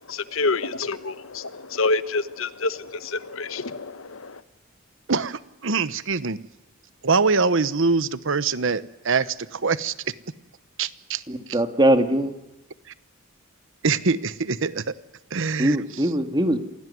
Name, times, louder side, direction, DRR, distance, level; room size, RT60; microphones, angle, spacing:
voice 1, 0.1-4.4, left 3 dB, 70° left, 13 dB, 1.1 m, -27 dB
voice 2, 5.1-6.4 7.0-9.9 10.8-11.2 13.8-14.8 15.3-15.8, right 4 dB, 65° right, 15 dB, 1.0 m, -23 dB
voice 3, 11.3-12.4 15.6-16.6, right 1 dB, 20° right, 7 dB, 1.9 m, -21 dB
27.5 x 17.5 x 9.5 m, 0.99 s
head